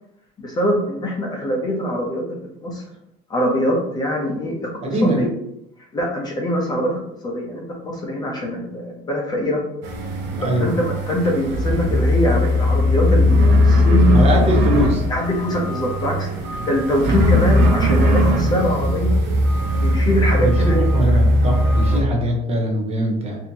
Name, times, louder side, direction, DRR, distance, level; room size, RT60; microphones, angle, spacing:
voice 1, 0.4-2.8 3.3-5.3 5.9-6.9 7.2-9.6 10.4-14.3 14.9-16.3 16.7-19.1 19.8-20.8 21.1-21.2 21.9-22.0, equal, 20° left, -1 dB, 0.7 m, -23 dB
voice 2, 4.8-5.2 10.3-10.7 14.1-15.0 20.4-23.4, right 1 dB, 30° right, 0 dB, 0.7 m, -22 dB
sound 1, 9.8-22.0, left 1 dB, 60° right, 0.9 m, -18 dB
4.1 x 2.7 x 2.8 m, 0.80 s
cardioid pair, 160°, 20 cm